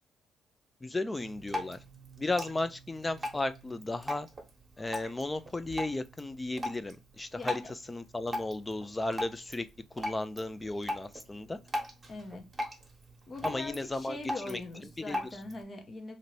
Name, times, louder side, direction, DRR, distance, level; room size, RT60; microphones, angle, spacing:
voice 1, 0.8-1.8 2.2-4.3 4.8-11.6 13.4-14.2 14.5-14.6 15.1-15.2, left 2 dB, 20° left, 0.4 m, -35 dB
Drip, 1.1-15.6, left 1 dB, 30° right, 1.0 m, -41 dB
voice 2, 7.3-7.7 12.1-12.5 13.3-16.2, left 3 dB, 35° left, 0.8 m, -42 dB
2.7 x 2.6 x 3.1 m
cardioid pair, 90°, 0 cm